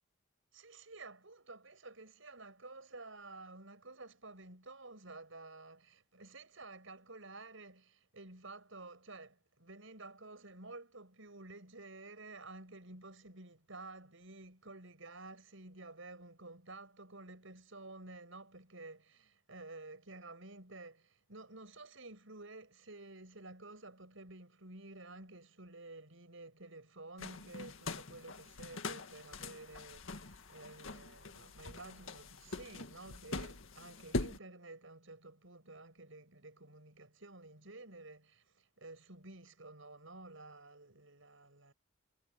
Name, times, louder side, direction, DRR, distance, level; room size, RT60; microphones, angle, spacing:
voice 1, 0.5-41.7, right 2 dB, 70° right, 5.9 m, -52 dB
sound 1, 27.2-34.4, left 2 dB, 70° left, 1.9 m, -43 dB
head